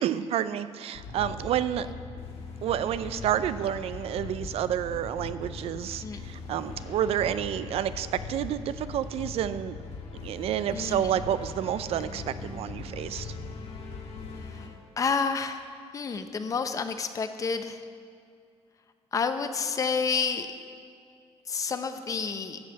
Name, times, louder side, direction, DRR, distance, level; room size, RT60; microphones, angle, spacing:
voice 1, 0.0-1.9 2.6-9.8 10.2-13.3, right 10 dB, 60° right, 14 dB, 0.5 m, -29 dB
sound 1, 0.9-14.7, left 4 dB, 60° left, 1.5 m, -40 dB
voice 2, 10.7-11.1 14.5-14.6 15.0-15.6 15.9-17.8 19.1-20.5 21.5-22.6, left 5 dB, 30° left, 9 dB, 0.6 m, -29 dB
13.0 x 5.5 x 7.9 m, 2.3 s
cardioid pair, 155°, 11 cm